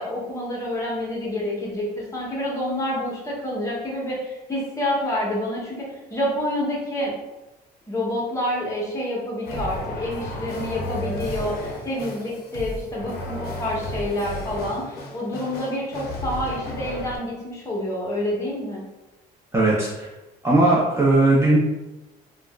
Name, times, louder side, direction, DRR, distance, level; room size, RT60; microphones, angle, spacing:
voice 1, 0.0-7.1 7.9-18.8, left 1 dB, 20° left, -4 dB, 1.0 m, -28 dB
sound 1, 9.4-17.2, left 1 dB, 65° left, 0.6 m, -33 dB
voice 2, 19.5-20.1 20.4-21.6, right 2 dB, 15° right, -5 dB, 0.5 m, -18 dB
3.5 x 2.1 x 2.3 m, 1.0 s
cardioid pair, 110°, 17 cm